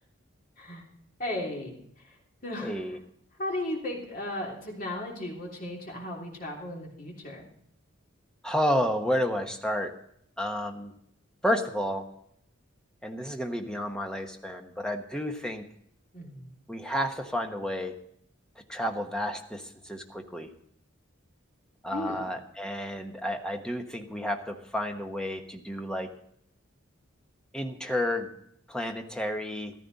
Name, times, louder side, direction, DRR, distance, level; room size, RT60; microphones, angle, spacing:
voice 1, 1.2-1.7 2.0-2.2 2.4-2.8 3.4-7.5 16.1-16.5 21.9-22.2, left 1 dB, 40° left, -2 dB, 3.1 m, -35 dB
voice 2, 2.6-3.0 8.4-9.9 10.4-10.9 11.4-12.0 13.0-15.6 16.7-17.9 18.7-20.5 21.8-26.1 27.5-28.3 28.7-29.7, equal, 5° left, 4 dB, 1.1 m, -31 dB
14.0 x 13.5 x 4.1 m, 0.70 s
head